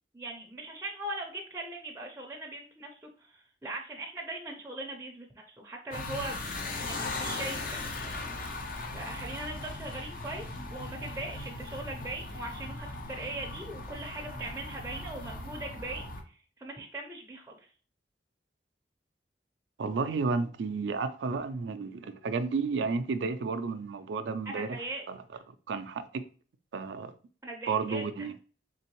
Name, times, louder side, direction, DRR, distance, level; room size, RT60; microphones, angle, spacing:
voice 1, 0.1-6.4 6.8-7.8 8.9-10.5 10.7-17.7 24.5-25.0 27.4-28.0, right 2 dB, 15° right, 0.5 m, -40 dB
sound 1, 5.9-16.2, left 2 dB, 55° left, 0.7 m, -38 dB
voice 2, 19.8-25.2 25.5-26.3 26.7-27.1 27.7-28.3, right 4 dB, 85° right, 0.4 m, -32 dB
3.7 x 3.4 x 2.9 m
head